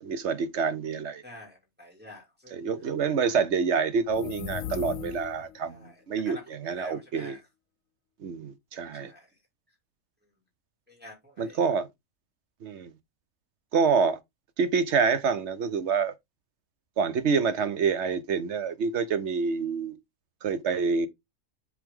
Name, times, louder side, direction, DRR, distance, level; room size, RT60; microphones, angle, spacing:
voice 1, 0.0-1.2 2.5-7.4 8.2-9.1 11.4-11.9 12.6-12.9 13.7-14.2 14.6-16.1 17.0-20.0 20.4-21.1, right 5 dB, 60° right, 1.0 m, -27 dB
voice 2, 1.2-2.6 5.7-7.4 8.9-9.3 10.9-11.6, left 1 dB, 5° right, 2.6 m, -48 dB
sound 1, 4.0-5.6, left 11 dB, 70° left, 1.0 m, -37 dB
7.7 x 3.4 x 3.6 m
omnidirectional pair, 1.5 m